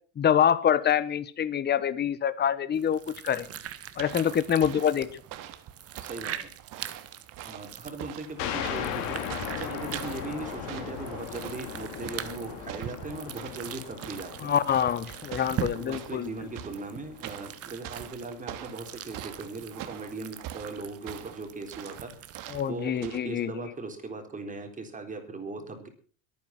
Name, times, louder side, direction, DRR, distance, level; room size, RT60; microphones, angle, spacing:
voice 1, 0.2-3.5 4.0-5.2 14.4-16.4 22.5-23.7, left 9 dB, 25° left, 15 dB, 1.2 m, -26 dB
sound 1, 2.7-22.7, right 10 dB, 35° right, 1.6 m, -42 dB
sound 2, 4.0-23.2, right 11 dB, 55° right, 2.2 m, -45 dB
voice 2, 6.0-6.5 7.4-14.6 15.7-22.1 22.6-25.9, right 3 dB, 20° right, 6 dB, 4.0 m, -39 dB
sound 3, 8.4-17.6, left 8 dB, 65° left, 4.0 m, -38 dB
23.0 x 9.3 x 6.0 m, 0.44 s
cardioid pair, 135°, 40 cm